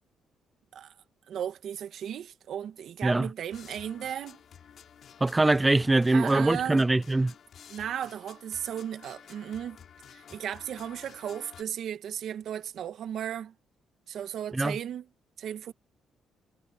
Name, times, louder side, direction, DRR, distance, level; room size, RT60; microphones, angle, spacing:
voice 1, 1.3-4.4 6.1-6.9 7.7-9.8 10.1-13.5 14.1-15.1 15.4-15.7, right 9 dB, 70° right, 1.4 m, -35 dB
sound 1, 3.5-11.6, left 8 dB, 60° left, 3.5 m, -52 dB
voice 2, 5.2-7.3 14.5-14.8, right 2 dB, 15° right, 0.4 m, -23 dB
cardioid pair, 90°, 0 cm